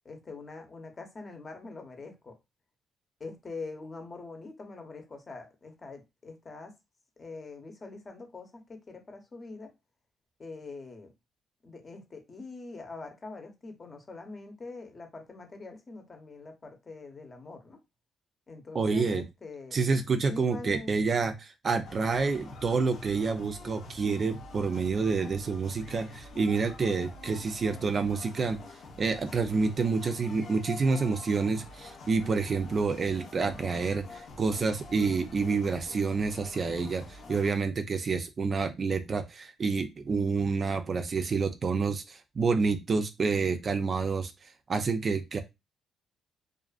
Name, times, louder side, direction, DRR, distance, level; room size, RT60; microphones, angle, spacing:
voice 1, 0.0-2.4 3.2-6.7 7.2-9.7 10.4-11.1 11.6-17.8 18.5-19.8 20.3-20.9, left 3 dB, 35° left, 0.8 m, -44 dB
voice 2, 18.7-19.2 19.7-28.6 29.0-44.3 44.7-45.4, right 4 dB, 45° right, 0.4 m, -28 dB
sound 1, 21.8-37.5, left 3 dB, 70° left, 0.9 m, -47 dB
2.5 x 2.4 x 2.4 m
cardioid pair, 90°, 0 cm